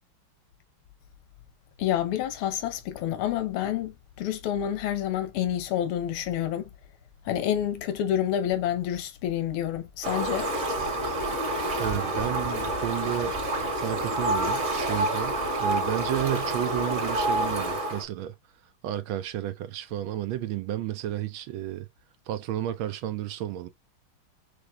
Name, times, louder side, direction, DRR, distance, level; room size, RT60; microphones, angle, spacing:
voice 1, 1.8-6.7 7.2-10.5, left 11 dB, 85° left, 1.7 m, -28 dB
Fowl, 10.0-18.0, right 1 dB, 35° right, 1.7 m, -28 dB
voice 2, 11.8-13.4 13.7-18.3 18.8-21.9 22.3-23.7, right 12 dB, 75° right, 1.3 m, -32 dB
5.9 x 3.3 x 2.2 m
omnidirectional pair, 2.3 m